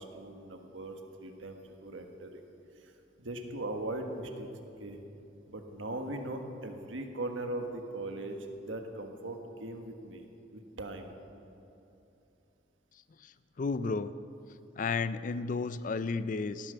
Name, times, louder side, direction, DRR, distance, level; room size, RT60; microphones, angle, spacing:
voice 1, 0.0-2.4 2.8-2.9 3.2-4.5 4.8-5.0 5.5-10.3 10.5-11.1, right 2 dB, 85° right, 5 dB, 1.5 m, -39 dB
voice 2, 13.2-14.1 14.8-16.7, left 4 dB, 45° left, 14 dB, 0.4 m, -33 dB
16.5 x 10.0 x 6.8 m, 2.9 s
head